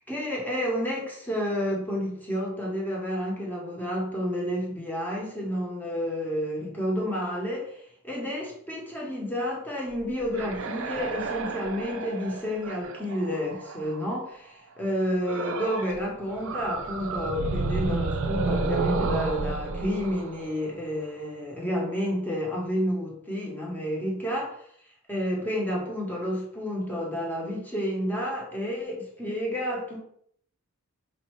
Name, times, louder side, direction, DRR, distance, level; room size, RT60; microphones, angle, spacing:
voice 1, 0.1-14.3 14.8-24.6 25.1-30.0, equal, 10° left, -3 dB, 0.9 m, -30 dB
sound 1, 10.0-14.2 15.3-16.0 16.3-21.2, right 3 dB, 60° right, 0.4 m, -31 dB
4.2 x 2.6 x 3.1 m, 0.64 s
head